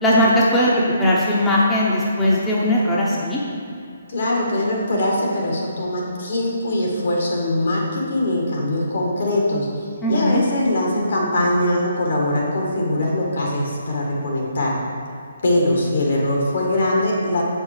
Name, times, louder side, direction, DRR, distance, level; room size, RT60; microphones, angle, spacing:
voice 1, 0.0-3.4 10.0-10.4, left 1 dB, 10° left, -6 dB, 1.0 m, -18 dB
voice 2, 4.1-14.7 15.4-17.4, left 1 dB, 65° left, -2 dB, 1.9 m, -22 dB
7.0 x 5.5 x 4.8 m, 2.4 s
figure-of-eight pair, 140°, 0 cm